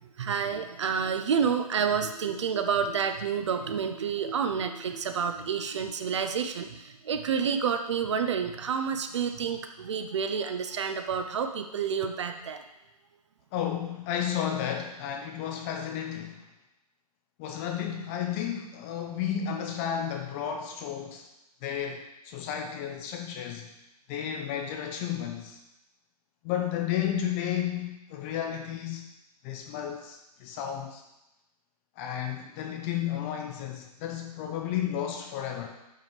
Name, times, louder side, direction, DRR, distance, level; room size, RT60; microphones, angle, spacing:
voice 1, 0.0-12.6, right 6 dB, 45° right, 7 dB, 0.6 m, -29 dB
voice 2, 13.5-16.4 17.4-21.3 21.6-23.7 24.1-25.6 26.4-29.1 29.4-31.0 32.0-35.7, left 9 dB, 20° left, 3 dB, 0.6 m, -32 dB
5.6 x 5.0 x 5.2 m, 0.92 s
figure-of-eight pair, 135°, 20 cm